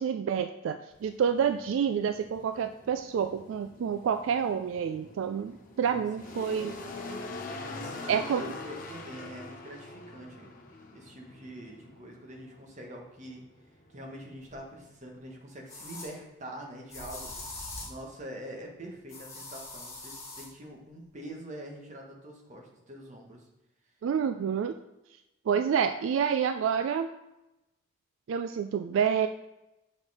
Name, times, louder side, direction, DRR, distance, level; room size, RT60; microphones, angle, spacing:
voice 1, 0.0-6.8 8.1-8.4 24.0-24.7 25.5-27.1 28.3-29.3, right 7 dB, 75° right, 9 dB, 0.3 m, -28 dB
sound 1, 0.9-15.4, left 2 dB, 45° left, 0.8 m, -45 dB
voice 2, 6.8-7.2 7.6-10.5 10.9-13.4 13.9-17.3 17.8-23.4, right 1 dB, 35° right, 0 dB, 1.3 m, -45 dB
sound 2, 14.5-14.6 15.7-16.1 16.9-18.0 19.1-20.5, left 2 dB, 15° left, 1.9 m, -42 dB
6.4 x 4.3 x 4.8 m, 0.95 s
head